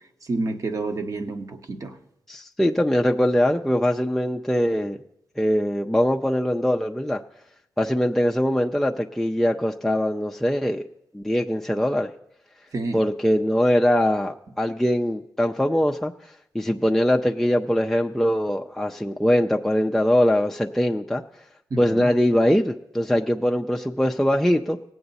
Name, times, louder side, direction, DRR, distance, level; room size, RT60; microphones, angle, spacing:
voice 1, 0.3-1.9 12.7-13.0 21.7-22.1, right 2 dB, 50° right, 1.2 m, -29 dB
voice 2, 2.3-5.0 5.4-7.2 7.8-10.8 11.1-12.1 12.9-16.1 16.5-21.2 21.8-24.8, equal, 5° left, 0.4 m, -22 dB
18.0 x 7.8 x 4.1 m
cardioid pair, 85°, 7 cm